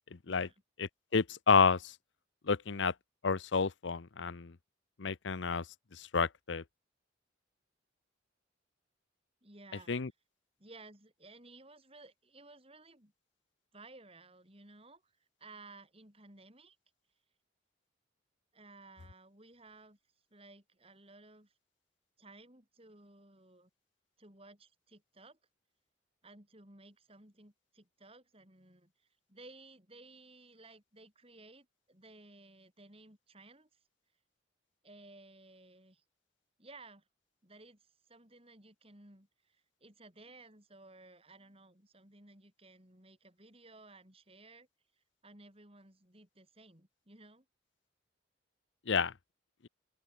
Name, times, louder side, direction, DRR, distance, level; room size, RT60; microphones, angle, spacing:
voice 1, 0.1-0.5 0.8-2.0 2.4-2.9 3.2-4.5 5.0-5.7 5.9-6.6 9.9-10.1 48.9-49.1, left 5 dB, 70° left, 0.7 m, -30 dB
voice 2, 9.4-10.0 10.6-13.1 13.7-15.1 15.4-16.8 18.5-20.0 20.3-21.5 22.2-23.7 24.2-25.4 26.2-33.7 34.8-36.0 36.6-37.0 37.4-44.7 45.0-47.5, right 2 dB, 30° right, 6.8 m, -57 dB
open air
head